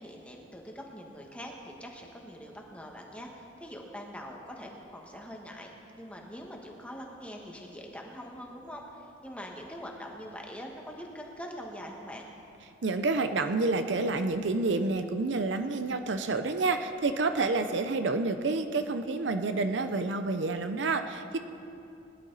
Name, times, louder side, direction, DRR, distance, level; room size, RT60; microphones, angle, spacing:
voice 1, 0.0-12.3, equal, 5° left, 0 dB, 1.4 m, -43 dB
voice 2, 12.8-21.4, right 3 dB, 70° right, 8 dB, 0.6 m, -29 dB
20.5 x 11.0 x 4.0 m, 2.8 s
head